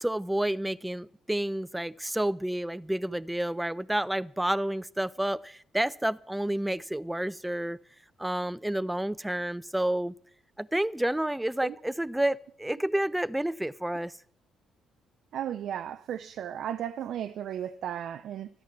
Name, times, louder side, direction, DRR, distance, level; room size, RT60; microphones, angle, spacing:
voice 1, 0.0-7.8 8.2-10.1 10.6-14.1, right 1 dB, 10° right, 0.5 m, -30 dB
voice 2, 15.3-18.5, right 10 dB, 60° right, 0.5 m, -35 dB
14.0 x 9.3 x 7.2 m
hypercardioid pair, 45°, 0 cm